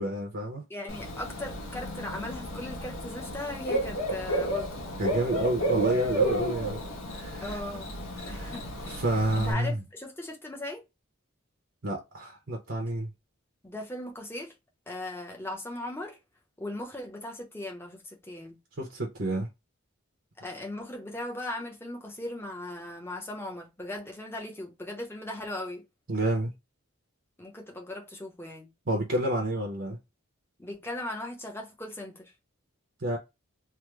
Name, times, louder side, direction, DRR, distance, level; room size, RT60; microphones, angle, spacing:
voice 1, 0.0-0.6 5.0-6.8 7.1-7.6 8.2-8.5 8.9-9.8 11.8-13.1 18.8-19.5 26.1-26.5 28.9-30.0 33.0-33.2, right 1 dB, 60° right, 0.8 m, -29 dB
voice 2, 0.7-4.8 7.4-7.9 8.3-9.0 9.3-10.8 13.6-14.5 14.9-16.2 16.6-18.6 20.4-25.8 27.4-28.7 30.6-32.3, left 1 dB, 10° left, 0.7 m, -38 dB
Bird / Cricket, 0.9-9.5, right 1 dB, 80° left, 1.2 m, -32 dB
3.4 x 2.1 x 3.1 m
head